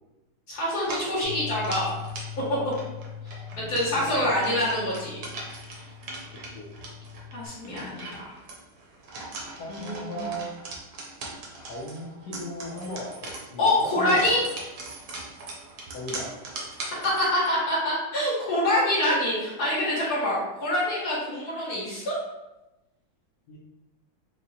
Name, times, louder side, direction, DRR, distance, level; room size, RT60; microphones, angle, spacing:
voice 1, 0.5-1.9 2.5-2.6 3.2-5.2 7.3-8.4 9.7-10.3 13.6-14.4 17.0-22.2, left 1 dB, 45° left, -8 dB, 1.6 m, -26 dB
sound 1, 0.8-17.5, right 2 dB, 65° right, 1.0 m, -41 dB
Bass guitar, 1.2-7.5, left 8 dB, 50° right, 0.5 m, -41 dB
voice 2, 3.4-4.6 6.5-6.7 9.6-10.5 11.5-14.4 15.9-16.7 23.5-23.6, equal, 75° left, -4 dB, 0.9 m, -38 dB
4.9 x 2.0 x 2.7 m, 1.0 s
omnidirectional pair, 2.3 m